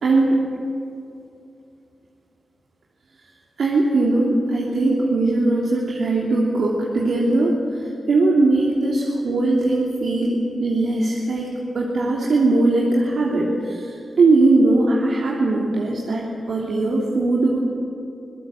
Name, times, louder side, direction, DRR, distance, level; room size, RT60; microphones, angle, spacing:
voice 1, 0.0-0.4 3.6-17.6, right 2 dB, 80° right, -3 dB, 3.0 m, -20 dB
26.5 x 17.5 x 7.7 m, 2.6 s
cardioid pair, 70°, 0 cm